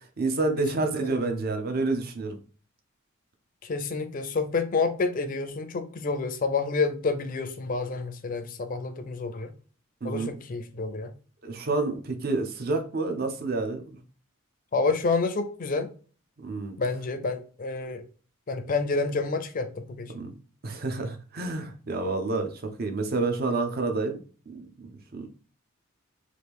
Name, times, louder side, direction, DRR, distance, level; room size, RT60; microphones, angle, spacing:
voice 1, 0.2-2.4 10.0-10.4 11.4-14.0 16.4-16.8 20.1-20.3 20.6-22.5 22.8-25.3, right 3 dB, 45° right, 0.5 m, -29 dB
voice 2, 3.6-9.5 10.0-11.1 14.7-15.9 16.8-18.0 18.5-20.1, left 4 dB, 40° left, 0.4 m, -29 dB
3.1 x 2.5 x 3.3 m
head